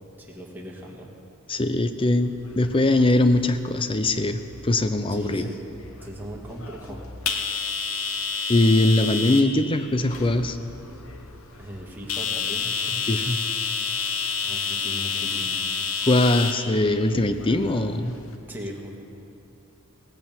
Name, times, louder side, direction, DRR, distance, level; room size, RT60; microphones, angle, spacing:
voice 1, 0.2-1.1 5.1-5.6 6.0-7.0 11.6-13.0 14.4-15.6 18.5-19.0, right 1 dB, 10° right, -2 dB, 1.8 m, -38 dB
voice 2, 1.5-5.5 8.5-10.6 13.1-13.4 16.1-18.2, left 2 dB, 25° left, 10 dB, 0.6 m, -21 dB
sound 1, 2.2-18.4, left 5 dB, 80° left, 1.0 m, -31 dB
17.5 x 8.4 x 7.2 m, 3.0 s
head